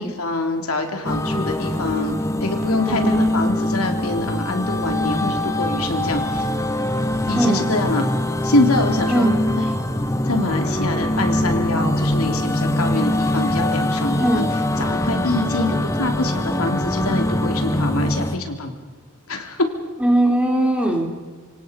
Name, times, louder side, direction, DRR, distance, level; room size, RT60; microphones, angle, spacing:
voice 1, 0.0-2.1 2.4-6.5 7.3-8.1 8.4-9.3 10.3-14.4 14.8-18.7 19.3-19.6, left 2 dB, 85° left, 4 dB, 3.4 m, -25 dB
sound 1, 1.0-18.4, left 1 dB, 15° left, 1.1 m, -23 dB
voice 2, 2.9-3.3 7.3-7.7 9.1-9.3 14.2-14.5 20.0-21.1, right 1 dB, 5° right, 1 dB, 3.6 m, -19 dB
26.5 x 25.5 x 5.3 m, 1.4 s
head